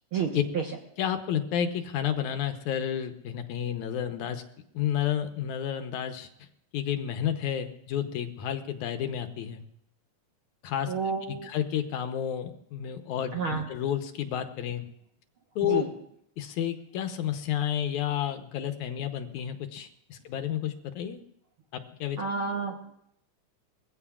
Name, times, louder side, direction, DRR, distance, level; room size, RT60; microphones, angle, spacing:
voice 1, 0.1-0.6 10.9-11.5 13.3-13.7 15.6-15.9 22.2-22.7, right 5 dB, 60° right, 1 dB, 1.4 m, -30 dB
voice 2, 1.0-4.4 4.7-6.3 6.7-9.6 10.6-10.9 11.3-14.9 15.6-15.8 16.4-21.2 21.7-22.2, left 10 dB, 75° left, 8 dB, 2.1 m, -31 dB
22.0 x 15.5 x 2.4 m, 0.72 s
omnidirectional pair, 3.6 m